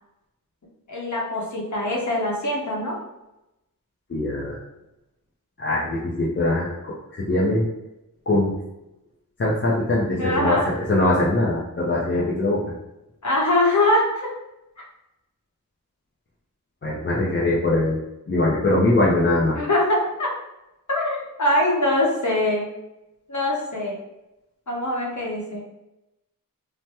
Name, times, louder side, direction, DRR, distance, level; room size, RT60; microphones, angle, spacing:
voice 1, 0.9-3.0 10.1-10.7 13.2-14.3 14.8-14.9 19.5-20.3 20.9-22.7 23.3-24.0 24.7-25.6, left 1 dB, 55° left, -2 dB, 0.8 m, -23 dB
voice 2, 4.1-4.6 5.6-7.7 8.3-8.6 9.4-12.6 16.8-18.0 18.3-19.6, left 2 dB, 35° left, -6 dB, 0.5 m, -22 dB
3.3 x 2.1 x 2.8 m, 0.92 s
wide cardioid pair, 95°, 35 cm